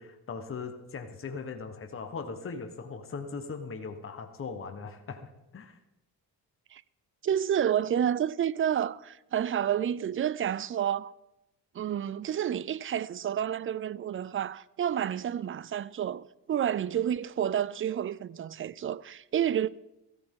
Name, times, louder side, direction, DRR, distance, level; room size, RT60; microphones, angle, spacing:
voice 1, 0.0-5.7, left 5 dB, 35° left, 1.2 m, -39 dB
voice 2, 7.2-11.1 11.7-19.7, right 9 dB, 35° right, 0.4 m, -29 dB
14.5 x 13.0 x 3.8 m
cardioid pair, 115°, 39 cm